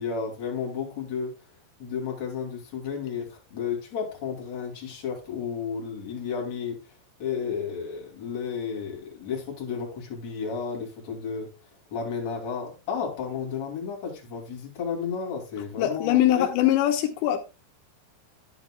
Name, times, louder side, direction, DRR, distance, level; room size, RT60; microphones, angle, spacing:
voice 1, 0.0-1.3 1.8-6.9 7.2-11.5 11.9-16.5, left 6 dB, 45° left, 3.6 m, -32 dB
voice 2, 15.8-17.4, left 12 dB, 85° left, 3.2 m, -22 dB
11.0 x 9.3 x 2.3 m
omnidirectional pair, 4.9 m